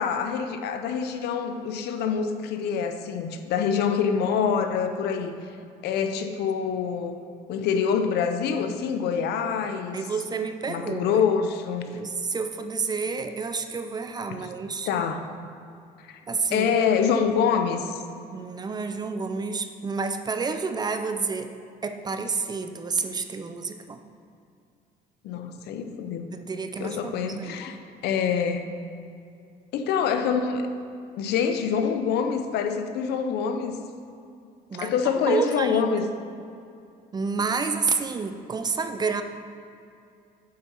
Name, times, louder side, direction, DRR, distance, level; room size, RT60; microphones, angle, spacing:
voice 1, 0.0-5.3 5.8-7.2 7.5-10.0 10.7-11.9 14.3-14.5 14.9-15.3 16.1-16.2 16.5-18.0 25.2-26.3 26.8-28.7 29.7-30.7 31.2-33.8 34.7-36.1, left 6 dB, 75° left, 7 dB, 0.6 m, -26 dB
voice 2, 9.9-11.2 11.9-14.9 16.3-16.7 18.3-21.5 21.8-24.0 26.3-27.6 34.7-35.9 37.1-39.2, right 4 dB, 25° right, 8 dB, 0.5 m, -29 dB
7.5 x 4.3 x 5.5 m, 2.5 s
cardioid pair, 110°, 17 cm